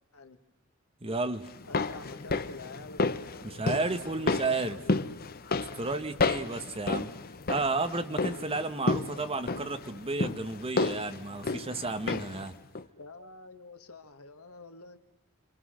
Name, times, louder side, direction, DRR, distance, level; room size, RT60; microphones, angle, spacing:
voice 1, 1.0-1.4 3.4-4.8 5.8-7.1 7.5-12.6, right 3 dB, 25° right, 9 dB, 1.3 m, -32 dB
sound 1, 1.5-12.5 12.8-12.9, left 3 dB, 45° left, 0.8 m, -32 dB
voice 2, 1.7-3.0 3.3-5.1 13.0-15.0, left 3 dB, 90° left, 8 dB, 1.8 m, -47 dB
27.0 x 26.0 x 6.4 m, 0.94 s
head